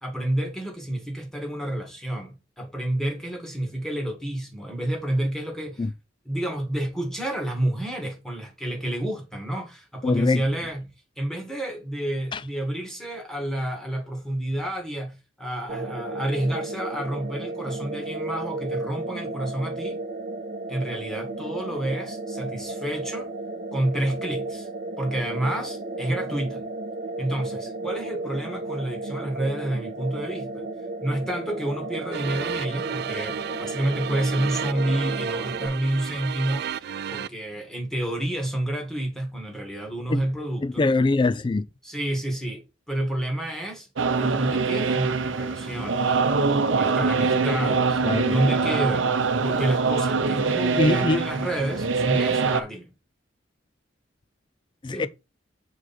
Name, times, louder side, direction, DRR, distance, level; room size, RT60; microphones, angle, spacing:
voice 1, 0.0-5.9 6.3-10.8 11.2-20.0 20.7-23.3 23.7-24.7 25.0-26.6 27.2-30.7 31.0-36.7 37.1-40.9 41.8-43.9 44.2-46.2 46.7-49.2 49.4-52.9 54.9-55.1, right 1 dB, 5° left, 2.1 m, -29 dB
voice 2, 10.0-10.4 12.3-12.4 40.1-40.2 40.6-41.7 48.0-48.3 50.8-51.2 54.8-55.1, left 3 dB, 25° left, 0.3 m, -23 dB
sound 1, 15.7-35.7, right 2 dB, 40° right, 1.4 m, -33 dB
Sad Theme, 32.1-37.3, right 8 dB, 55° right, 0.3 m, -33 dB
sound 2, 44.0-52.6, right 4 dB, 80° right, 0.8 m, -23 dB
6.4 x 4.7 x 4.4 m
head